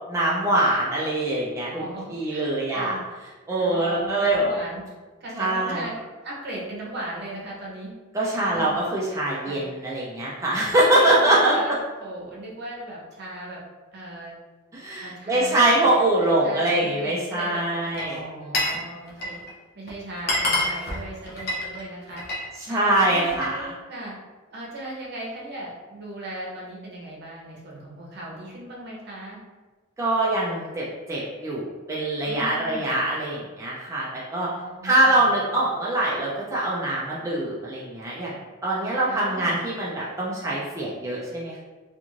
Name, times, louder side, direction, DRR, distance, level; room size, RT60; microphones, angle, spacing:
voice 1, 0.1-1.8 2.1-3.0 3.5-4.5 5.3-5.8 8.1-11.5 14.7-18.2 22.6-23.7 30.0-34.5 34.8-41.6, right 1 dB, 15° right, -7 dB, 0.4 m, -23 dB
voice 2, 1.7-3.0 3.6-4.8 5.2-5.9 6.2-7.9 8.4-8.8 9.4-9.6 11.0-13.6 13.9-14.4 15.0-15.6 16.2-19.4 19.7-22.2 22.7-24.1 24.5-29.4 32.2-33.0 34.6-35.3 39.1-39.6, right 1 dB, 55° right, -4 dB, 0.7 m, -37 dB
Glass, 17.8-18.8 19.1-19.5 19.9-20.0 20.2-22.5 22.8-23.6, left 1 dB, 55° left, 0.6 m, -27 dB
2.5 x 2.4 x 2.9 m, 1.3 s
head